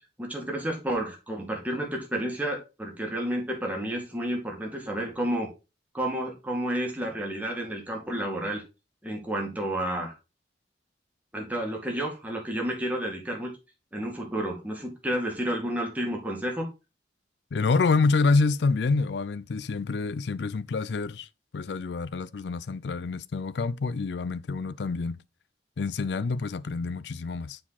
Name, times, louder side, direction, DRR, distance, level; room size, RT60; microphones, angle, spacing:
voice 1, 0.2-5.5 5.9-8.6 9.0-10.2 11.3-13.6 13.9-16.7, right 1 dB, 10° right, 2.1 m, -31 dB
voice 2, 17.5-25.2 25.8-27.6, left 4 dB, 75° left, 0.5 m, -27 dB
7.5 x 4.8 x 4.1 m
head